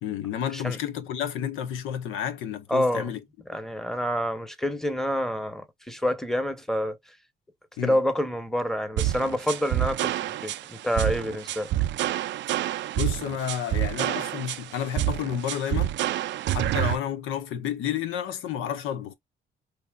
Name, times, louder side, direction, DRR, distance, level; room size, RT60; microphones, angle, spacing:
voice 1, 0.0-3.2 7.8-8.0 13.0-16.0 16.5-19.1, left 9 dB, 90° left, 0.7 m, -31 dB
voice 2, 2.7-3.1 3.5-7.0 7.8-11.7, equal, ahead, 0.9 m, -27 dB
sound 1, 9.0-17.0, right 14 dB, 65° right, 0.4 m, -27 dB
4.7 x 2.8 x 2.3 m
cardioid pair, 90°, 20 cm